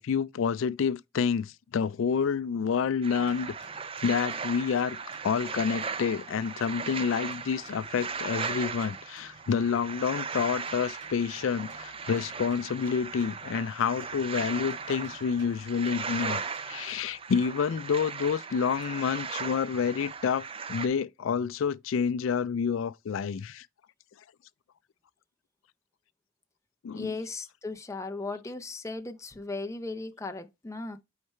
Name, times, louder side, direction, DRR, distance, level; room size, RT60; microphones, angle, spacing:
voice 1, 0.0-3.5 4.0-5.0 5.2-23.7 26.8-27.1, left 6 dB, 80° left, 0.4 m, -28 dB
sound 1, 3.0-20.9, right 5 dB, 30° right, 0.5 m, -37 dB
sound 2, 3.3-6.4 6.6-9.9 10.3-13.7 14.0-17.3, right 4 dB, 65° right, 2.6 m, -58 dB
voice 2, 26.9-31.0, left 3 dB, 15° left, 0.6 m, -37 dB
6.4 x 4.7 x 4.3 m
head